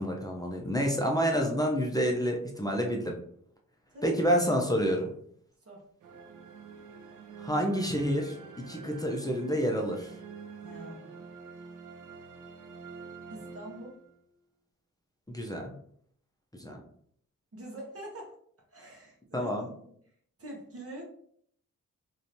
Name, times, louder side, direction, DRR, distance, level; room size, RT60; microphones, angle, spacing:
voice 1, 0.0-3.1 4.0-5.1 7.4-8.3 8.7-10.1 15.3-15.7 16.5-16.8 19.3-19.7, equal, 10° left, 0 dB, 0.7 m, -28 dB
sound 1, 6.0-14.4, right 5 dB, 65° right, 0.5 m, -47 dB
voice 2, 10.6-11.1 13.3-14.0 17.5-18.4 18.7-19.5 19.8-19.9 20.4-21.1, right 1 dB, 45° right, -1 dB, 1.0 m, -44 dB
3.1 x 2.7 x 2.7 m, 0.64 s
cardioid pair, 50°, 33 cm